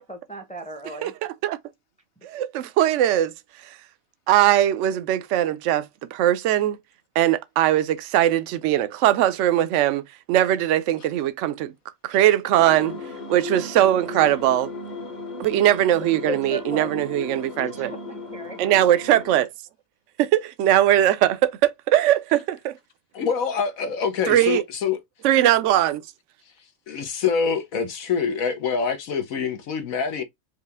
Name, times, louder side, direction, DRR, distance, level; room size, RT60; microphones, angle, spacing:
voice 1, 0.1-1.1 16.2-16.9 17.5-18.6, left 1 dB, 5° left, 0.7 m, -35 dB
voice 2, 1.0-1.6 2.2-3.3 4.3-5.9 6.1-6.8 7.2-11.7 12.0-13.0 13.3-14.7 15.4-17.9 18.6-19.5 20.2-22.7 24.3-24.6 25.2-26.0, right 12 dB, 65° right, 0.9 m, -20 dB
sound 1, 12.6-19.4, left 3 dB, 35° left, 1.0 m, -36 dB
voice 3, 23.1-25.0 26.9-30.2, left 6 dB, 75° left, 1.4 m, -25 dB
4.9 x 2.8 x 3.4 m
omnidirectional pair, 1.5 m